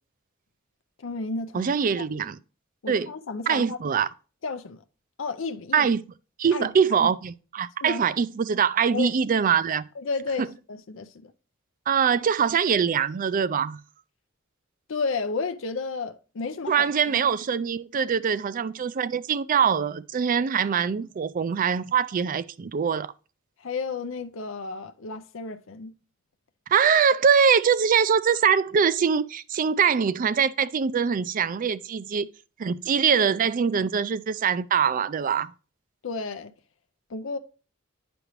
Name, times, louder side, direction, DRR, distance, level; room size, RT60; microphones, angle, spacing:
voice 1, 1.0-2.1 2.8-3.8 4.4-4.8 5.2-5.9 6.5-7.1 7.8-8.0 8.9-9.1 10.0-11.3 14.9-17.2 23.6-25.9 36.0-36.5 37.1-37.4, left 4 dB, 70° left, 0.6 m, -32 dB
voice 2, 1.5-2.4 2.9-3.1 3.5-4.1 5.7-6.0 6.4-9.9 11.9-13.8 16.7-23.1 26.7-32.3 32.6-35.5, right 6 dB, 40° right, 0.4 m, -23 dB
9.7 x 5.2 x 3.0 m
head